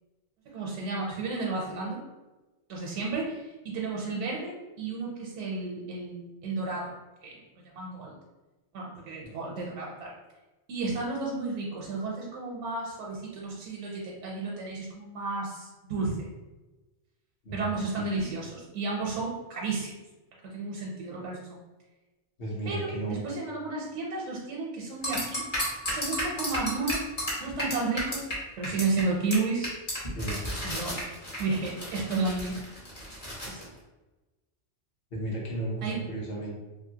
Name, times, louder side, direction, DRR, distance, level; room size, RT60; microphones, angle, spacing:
voice 1, 0.5-2.0 2.7-6.9 7.2-7.3 7.6-8.1 8.7-10.1 10.7-16.3 17.5-19.9 20.4-21.6 22.7-25.4 25.9-27.0 27.4-28.3 28.6-29.7 30.6-31.0 31.4-32.6 33.4-33.7 35.8-36.0, right 3 dB, 85° right, -2 dB, 0.9 m, -32 dB
voice 2, 17.4-18.1 22.4-23.2 30.1-30.5 35.1-36.6, right 1 dB, 55° left, -4 dB, 1.0 m, -34 dB
sound 1, 25.0-28.3 28.6-29.0 29.3-29.4 29.6-33.6, equal, 35° left, 0.9 m, -33 dB
2.7 x 2.6 x 2.7 m, 1.1 s
omnidirectional pair, 1.2 m